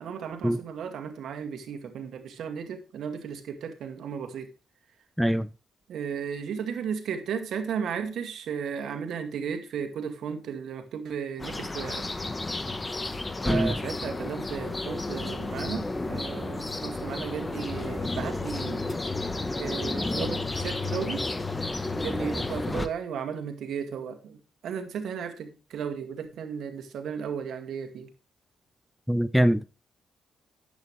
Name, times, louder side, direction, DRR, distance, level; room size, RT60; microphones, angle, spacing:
voice 1, 0.0-4.5 5.9-12.1 13.4-18.9 19.6-21.3 21.9-28.1, right 7 dB, 70° right, 2.0 m, -35 dB
sound 1, 11.4-22.9, left 2 dB, 20° left, 1.0 m, -32 dB
voice 2, 29.1-29.7, equal, ahead, 0.5 m, -23 dB
11.0 x 8.4 x 3.2 m
cardioid pair, 90°, 0 cm